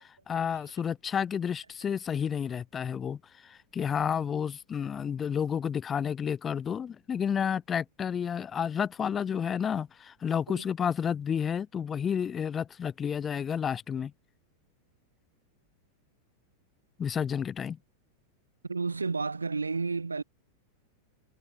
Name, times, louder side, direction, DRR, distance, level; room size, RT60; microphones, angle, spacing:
voice 1, 0.0-14.1 17.0-17.8, left 7 dB, 20° left, 1.6 m, -31 dB
voice 2, 18.6-20.2, right 4 dB, 80° right, 2.3 m, -31 dB
figure-of-eight pair, 90°, 0 cm